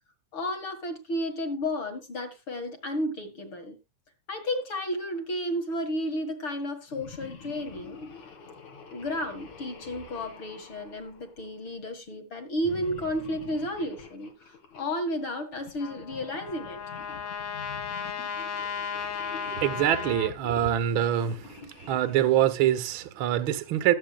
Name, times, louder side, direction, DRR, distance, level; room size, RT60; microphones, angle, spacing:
voice 1, 0.3-3.8 4.3-8.1 8.9-14.3 14.7-16.8, equal, 45° left, 2.4 m, -32 dB
sound 1, 6.9-11.7 12.6-14.9 15.5-22.4, left 5 dB, 65° left, 3.3 m, -47 dB
Trumpet, 15.8-20.3, left 6 dB, 85° left, 3.3 m, -35 dB
voice 2, 19.6-21.4 21.9-23.9, right 11 dB, 75° right, 1.2 m, -24 dB
19.5 x 7.9 x 2.4 m
omnidirectional pair, 3.6 m